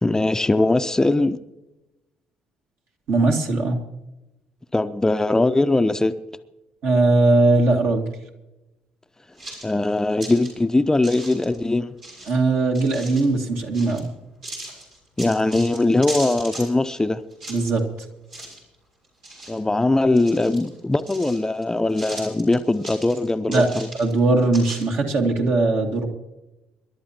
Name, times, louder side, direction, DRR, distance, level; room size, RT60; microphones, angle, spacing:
voice 1, 0.0-1.4 4.7-6.1 9.6-11.9 15.2-17.2 19.5-23.9, left 2 dB, 15° left, 0.6 m, -21 dB
voice 2, 3.1-3.8 6.8-8.1 12.3-14.1 17.5-17.8 23.5-23.7 24.0-26.1, right 2 dB, 55° right, 2.1 m, -19 dB
sound 1, 9.4-10.5 11.0-11.6 12.0-13.3 13.7-14.1 14.4-17.0 17.3-18.0 18.3-18.8 19.0-19.8 20.2-21.6 21.9-24.2 24.5-24.8, right 1 dB, 75° right, 4.6 m, -37 dB
27.0 x 12.0 x 2.9 m
figure-of-eight pair, 45°, 4 cm